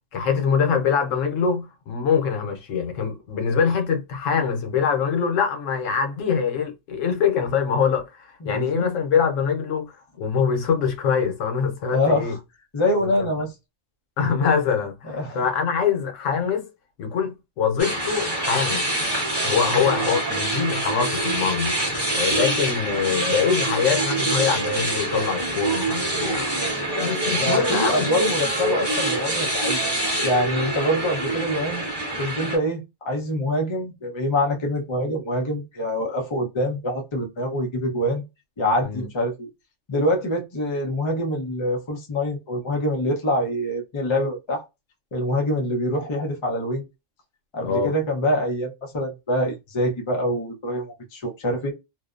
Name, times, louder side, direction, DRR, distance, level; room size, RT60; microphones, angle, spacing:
voice 1, 0.1-12.4 13.0-13.3 14.2-16.7 17.0-18.9 19.4-26.5 26.9-28.1 38.8-39.1 47.6-47.9, left 6 dB, 85° left, 1.1 m, -24 dB
voice 2, 8.4-8.8 11.9-12.4 12.7-13.5 15.0-15.4 19.5-19.6 27.4-29.8 30.2-31.9 32.2-38.2 38.6-39.5 39.9-44.6 45.1-46.9 47.5-51.7, equal, 30° left, 0.6 m, -25 dB
sound 1, 17.8-32.6, right 2 dB, 25° right, 0.8 m, -25 dB
2.7 x 2.0 x 2.4 m
omnidirectional pair, 1.3 m